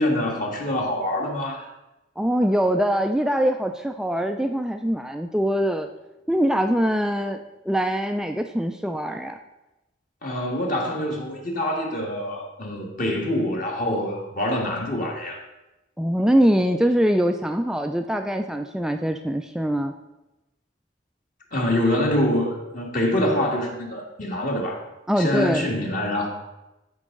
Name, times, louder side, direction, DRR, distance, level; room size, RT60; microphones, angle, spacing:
voice 1, 0.0-1.7 10.2-15.4 21.5-24.8 25.2-26.3, left 1 dB, 45° left, 0 dB, 1.8 m, -25 dB
voice 2, 2.2-5.9 6.3-9.4 16.0-19.9 25.1-25.7, equal, 5° right, 6 dB, 0.3 m, -23 dB
13.5 x 5.5 x 3.8 m, 0.99 s
head